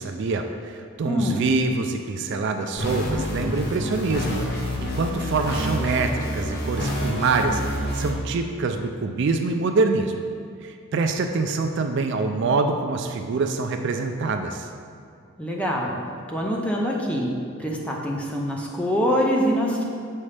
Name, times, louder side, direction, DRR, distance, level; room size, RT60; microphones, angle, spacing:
voice 1, 0.0-10.1 10.6-14.7, right 3 dB, 55° right, 6 dB, 0.3 m, -25 dB
voice 2, 1.1-1.5 15.4-16.0 16.3-17.3 17.6-19.8, equal, 5° left, -2 dB, 0.6 m, -24 dB
sound 1, 2.8-8.1, equal, 50° left, 0.9 m, -28 dB
7.1 x 5.6 x 3.3 m, 2.3 s
head